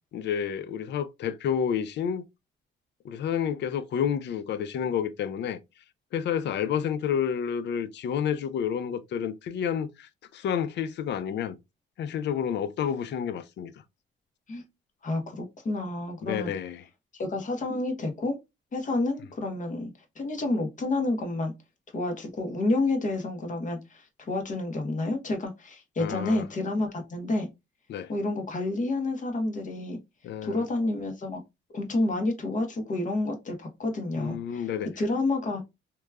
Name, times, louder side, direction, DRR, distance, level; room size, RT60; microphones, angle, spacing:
voice 1, 0.1-2.3 3.0-5.6 6.1-11.6 12.0-13.7 16.2-16.8 26.0-26.4 27.9-28.1 30.2-30.6 34.2-34.9, left 8 dB, 60° left, 0.4 m, -30 dB
voice 2, 15.0-16.5 17.1-18.4 18.7-21.5 21.9-27.5 28.1-30.0 30.4-31.4 31.7-34.7 35.0-35.6, left 2 dB, 40° left, 1.0 m, -29 dB
2.9 x 2.2 x 2.2 m
cardioid pair, 90°, 20 cm